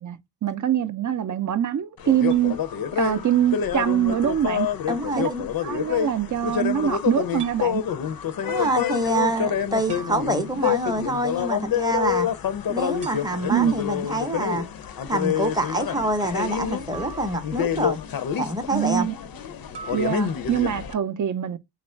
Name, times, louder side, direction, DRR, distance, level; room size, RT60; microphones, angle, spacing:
voice 1, 0.0-2.5 2.9-4.7 5.2-5.3 5.6-7.8 13.5-13.7 18.7-19.1 19.9-21.6, right 10 dB, 50° right, 0.5 m, -24 dB
sound 1, 2.0-20.9, left 9 dB, 60° left, 0.5 m, -28 dB
sound 2, 2.3-2.5 4.9-5.1 7.4-7.7 9.9-10.8 13.0-13.6 16.9-17.8 19.7-20.1, right 4 dB, 85° right, 0.9 m, -41 dB
voice 2, 4.9-5.5 8.4-12.3 12.7-14.7 15.1-18.0 18.4-19.1, right 2 dB, 10° right, 0.7 m, -26 dB
3.1 x 2.4 x 4.3 m
wide cardioid pair, 105°, 41 cm